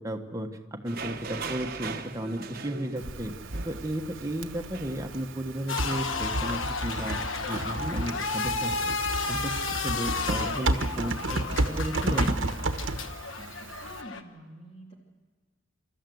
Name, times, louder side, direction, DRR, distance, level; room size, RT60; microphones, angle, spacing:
voice 1, 0.0-3.3 3.6-7.2 7.5-9.0 9.3-12.3, right 1 dB, 15° right, 4 dB, 1.4 m, -34 dB
sound 1, 0.9-11.8, right 4 dB, 50° right, 1.1 m, -43 dB
Typing, 3.0-14.0, right 2 dB, 80° right, 1.2 m, -32 dB
sound 2, 5.7-14.2, left 4 dB, 80° left, 1.2 m, -33 dB
voice 2, 13.4-14.9, right 1 dB, 30° left, -1 dB, 2.8 m, -48 dB
26.5 x 13.5 x 7.9 m, 1.5 s
head